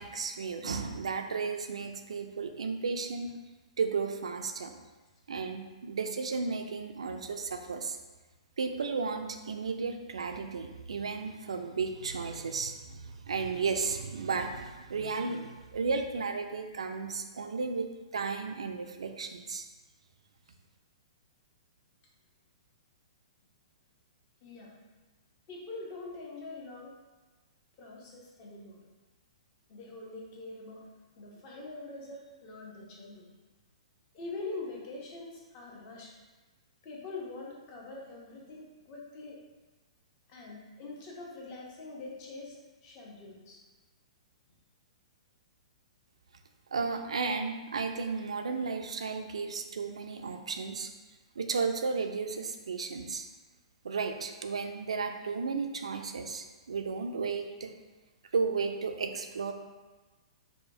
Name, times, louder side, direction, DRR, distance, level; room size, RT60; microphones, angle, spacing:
voice 1, 0.0-3.3 3.8-4.7 5.3-8.0 8.6-17.9 18.1-19.7 46.7-50.9 51.4-53.3 53.8-57.7 58.3-59.5, right 4 dB, 70° right, 6 dB, 0.4 m, -34 dB
voice 2, 24.4-24.8 25.5-27.0 27.8-28.8 29.7-30.9 31.2-33.3 34.1-36.2 36.8-39.4 40.3-42.6 42.8-43.6, left 3 dB, 35° left, -2 dB, 0.8 m, -44 dB
4.8 x 2.2 x 2.7 m, 1.2 s
figure-of-eight pair, 115°, 3 cm